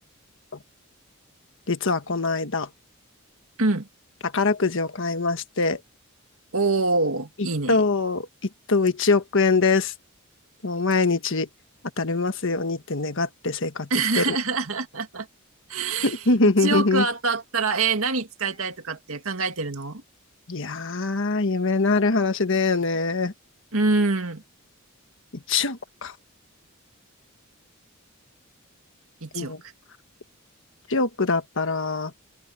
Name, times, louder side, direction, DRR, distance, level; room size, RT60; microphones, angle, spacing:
voice 1, 1.7-2.7 4.3-5.8 7.7-8.3 8.7-9.9 10.6-11.5 12.0-13.9 14.1-14.4 16.0-17.0 20.5-23.3 25.5-26.1 29.3-29.6 30.9-32.1, left 3 dB, 60° left, 1.4 m, -23 dB
voice 2, 6.5-7.8 13.9-15.3 15.7-20.0 23.7-24.4 29.2-29.5, right 3 dB, 70° right, 2.2 m, -25 dB
head